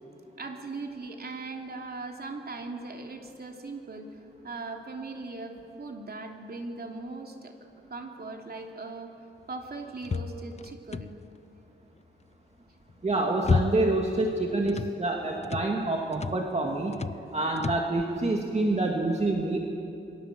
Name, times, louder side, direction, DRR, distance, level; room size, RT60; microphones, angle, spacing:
voice 1, 0.4-4.1 4.4-7.5 7.9-9.1 9.5-11.1, right 3 dB, 55° right, 3 dB, 3.1 m, -39 dB
sound 1, 10.0-11.4 12.9-14.1 14.3-15.0 15.4-15.7 16.1-16.5 16.9-17.3 17.6-17.9, left 5 dB, 35° left, 0.6 m, -31 dB
voice 2, 13.0-16.9 17.3-19.6, right 2 dB, 35° right, 1 dB, 2.3 m, -27 dB
28.0 x 23.5 x 7.7 m, 2.8 s
wide cardioid pair, 90°, 20 cm